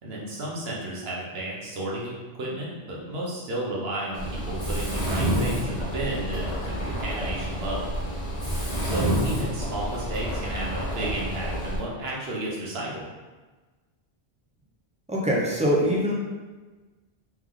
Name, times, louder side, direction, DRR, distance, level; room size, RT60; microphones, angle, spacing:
voice 1, 0.0-7.9 8.8-13.0, right 1 dB, 70° right, -4 dB, 1.2 m, -33 dB
Mechanisms, 4.1-11.8, equal, 40° left, 1.1 m, -29 dB
voice 2, 15.1-16.1, equal, 10° right, -5 dB, 0.6 m, -23 dB
3.4 x 3.2 x 3.6 m, 1.3 s
omnidirectional pair, 1.1 m